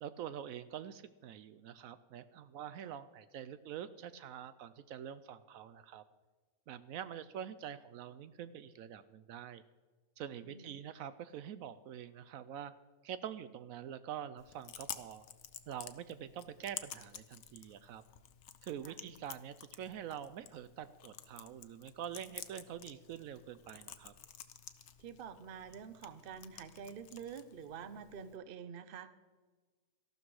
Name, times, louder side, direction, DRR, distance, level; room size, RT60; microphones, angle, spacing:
voice 1, 0.0-6.0 6.7-9.6 10.2-12.7 13.0-15.3 15.7-18.0 18.6-24.1, right 9 dB, 75° right, 13 dB, 1.0 m, -45 dB
voice 2, 10.4-10.7 18.8-19.0 25.0-29.1, right 7 dB, 50° right, 12 dB, 0.8 m, -47 dB
Chewing mastication, 14.4-28.4, left 9 dB, 60° left, 0.9 m, -51 dB
13.5 x 12.0 x 4.8 m, 1.3 s
omnidirectional pair, 1.5 m